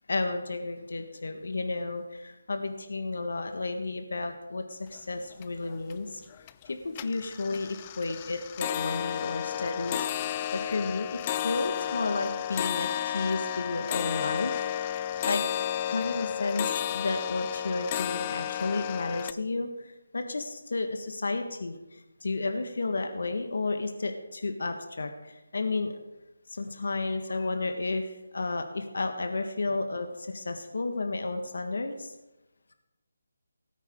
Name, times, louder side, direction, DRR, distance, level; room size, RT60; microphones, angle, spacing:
voice 1, 0.1-6.2 6.6-14.6 15.2-15.4 15.8-26.0 26.5-32.1, left 3 dB, 70° left, 6 dB, 1.5 m, -32 dB
sound 1, 4.9-5.0 5.3-5.9 6.3-6.7 6.9-19.3, left 11 dB, 25° left, 0.4 m, -32 dB
17.5 x 9.2 x 3.7 m, 1.0 s
figure-of-eight pair, 160°, 0 cm